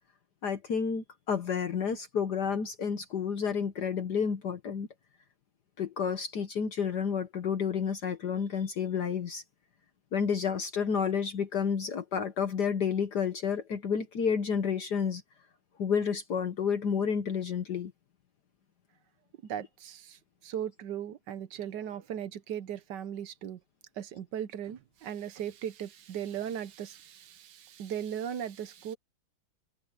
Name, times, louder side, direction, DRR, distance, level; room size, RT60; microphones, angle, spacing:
voice 1, 0.4-4.9 5.8-9.4 10.1-15.2 15.8-17.9, left 6 dB, 55° left, 1.6 m, -30 dB
voice 2, 19.4-23.6 24.0-29.0, right 9 dB, 65° right, 1.4 m, -38 dB
omnidirectional pair, 2.3 m